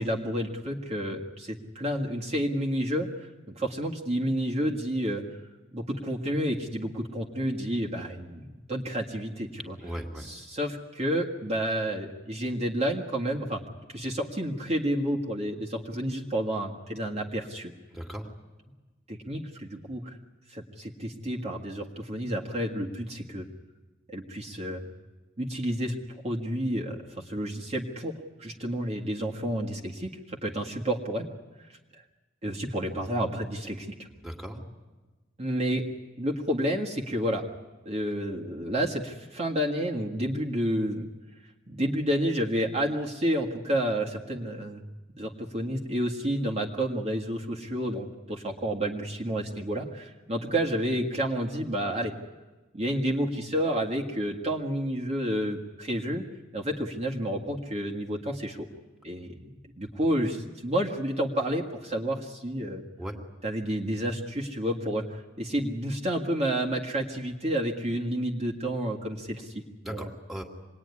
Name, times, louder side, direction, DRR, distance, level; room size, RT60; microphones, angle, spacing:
voice 1, 0.0-3.3 3.6-5.2 5.7-13.6 13.9-17.7 19.1-20.2 20.5-23.5 24.1-24.9 25.4-25.9 26.2-31.3 32.4-34.1 35.4-35.8 36.2-37.5 37.9-41.1 41.7-44.8 45.2-52.1 52.7-56.2 56.5-58.7 59.0-62.8 63.4-70.1, equal, 35° right, -1 dB, 1.8 m, -30 dB
voice 2, 9.8-10.2 17.9-18.2 34.2-34.6 63.0-63.1 69.8-70.4, equal, ahead, 1 dB, 2.4 m, -37 dB
26.5 x 20.5 x 9.7 m, 1.2 s
head